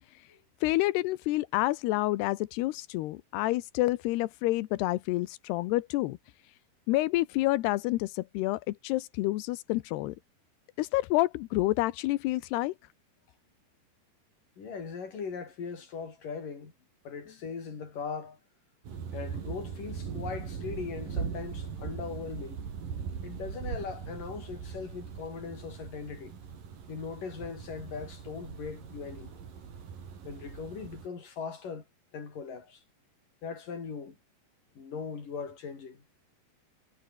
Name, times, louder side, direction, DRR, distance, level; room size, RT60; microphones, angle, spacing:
voice 1, 0.6-6.2 6.9-10.1 10.8-12.7, left 18 dB, 90° left, 2.9 m, -28 dB
voice 2, 14.6-16.7 17.0-18.4 19.1-22.7 23.2-26.4 26.9-29.4 30.2-31.8 32.1-32.8 33.4-34.2 34.8-36.0, left 5 dB, 55° left, 6.4 m, -39 dB
sound 1, 18.8-31.1, right 6 dB, 60° right, 5.2 m, -40 dB
omnidirectional pair, 4.6 m